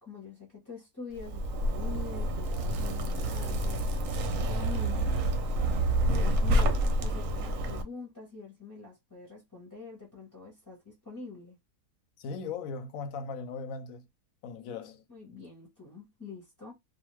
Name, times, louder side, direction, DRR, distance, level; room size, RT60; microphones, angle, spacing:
voice 1, 0.0-4.1 4.5-5.1 5.4-5.7 6.0-11.6 15.1-16.7, left 5 dB, 20° left, 0.6 m, -45 dB
Zipper (clothing), 1.2-7.8, right 1 dB, 65° right, 0.8 m, -28 dB
voice 2, 12.2-14.0 14.4-15.0, left 4 dB, 70° left, 0.9 m, -38 dB
2.5 x 2.3 x 3.0 m
omnidirectional pair, 1.7 m